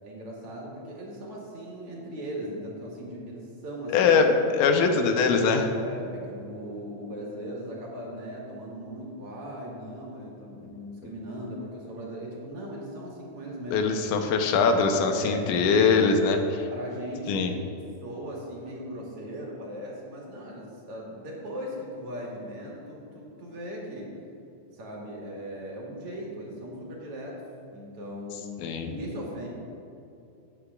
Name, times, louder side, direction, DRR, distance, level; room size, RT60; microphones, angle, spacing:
voice 1, 0.0-4.1 5.8-13.9 15.1-16.0 16.7-24.1 24.7-27.4 27.7-29.5, equal, 55° right, -3 dB, 2.3 m, -38 dB
voice 2, 3.9-5.7 13.7-16.7 17.3-17.5 28.6-28.9, left 5 dB, 80° left, 5 dB, 2.2 m, -22 dB
13.5 x 9.0 x 2.3 m, 2.7 s
omnidirectional pair, 3.6 m